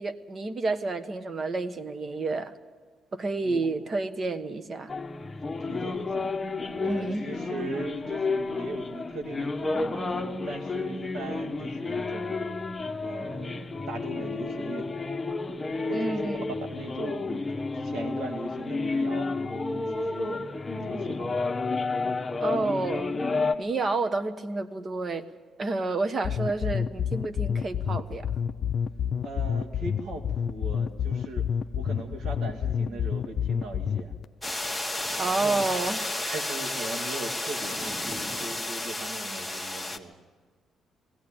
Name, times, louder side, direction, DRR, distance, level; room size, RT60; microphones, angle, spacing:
voice 1, 0.0-2.5 3.1-4.9 6.8-7.2 15.9-16.5 22.4-23.1 23.6-25.2 25.6-28.3 35.2-36.0, right 3 dB, 40° right, 10 dB, 1.3 m, -29 dB
sound 1, 4.9-23.5, left 3 dB, 20° left, 1.2 m, -31 dB
voice 2, 5.6-6.3 6.7-12.4 13.0-14.9 15.9-16.3 16.7-17.5 17.7-19.3 19.7-20.4 20.8-21.4 29.2-34.1 35.3-35.6 36.2-40.2, right 2 dB, 75° right, 4 dB, 2.4 m, -39 dB
sound 2, 26.2-34.2, left 8 dB, 55° left, 0.6 m, -28 dB
sound 3, 34.4-40.0, left 1 dB, ahead, 1.6 m, -32 dB
20.5 x 16.5 x 8.9 m, 1.4 s
cardioid pair, 90°, 0 cm